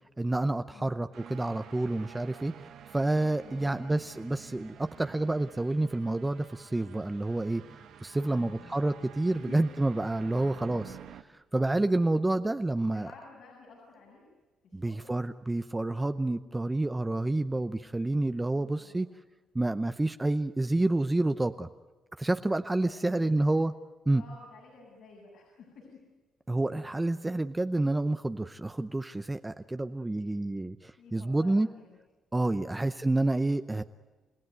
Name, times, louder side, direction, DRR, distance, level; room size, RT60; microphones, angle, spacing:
voice 1, 0.2-10.8 11.5-13.1 14.7-19.1 19.5-21.7 22.2-23.7 24.1-24.2 26.5-31.7 32.3-33.8, right 2 dB, 15° right, 9 dB, 0.7 m, -29 dB
sound 1, 1.1-11.2, right 9 dB, 75° right, 1.2 m, -50 dB
voice 2, 3.4-3.8 8.1-8.8 9.3-9.6 10.3-10.6 12.8-14.2 14.6-15.0 18.5-19.1 22.9-23.3 24.1-26.0 31.0-32.0 32.6-32.9, left 4 dB, 80° left, -2 dB, 7.3 m, -52 dB
29.5 x 16.0 x 9.5 m, 1.2 s
cardioid pair, 90°, 0 cm